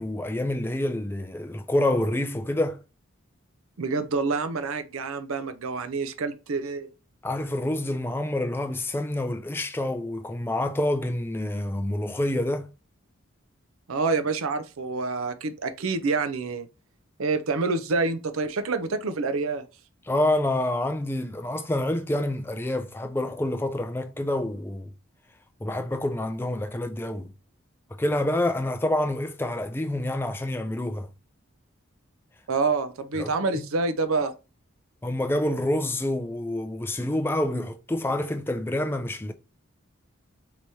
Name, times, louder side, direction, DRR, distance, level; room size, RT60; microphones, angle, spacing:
voice 1, 0.0-2.8 7.2-12.7 20.1-24.9 25.6-27.3 27.9-31.1 33.1-33.6 35.0-39.3, left 1 dB, 10° left, 0.3 m, -27 dB
voice 2, 3.8-6.9 13.9-16.7 17.2-19.6 32.5-34.3, right 4 dB, 85° right, 0.6 m, -27 dB
4.7 x 3.0 x 2.7 m
head